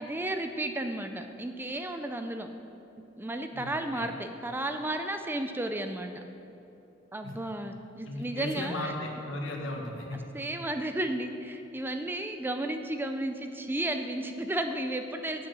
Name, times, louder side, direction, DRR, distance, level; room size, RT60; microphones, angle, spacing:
voice 1, 0.0-2.5 3.0-6.2 7.1-8.9 10.3-15.5, right 1 dB, 10° right, 7 dB, 0.4 m, -33 dB
voice 2, 3.5-4.1 7.2-7.3 8.1-10.2, left 1 dB, 85° left, 1 dB, 1.4 m, -36 dB
8.7 x 6.5 x 6.9 m, 2.9 s
head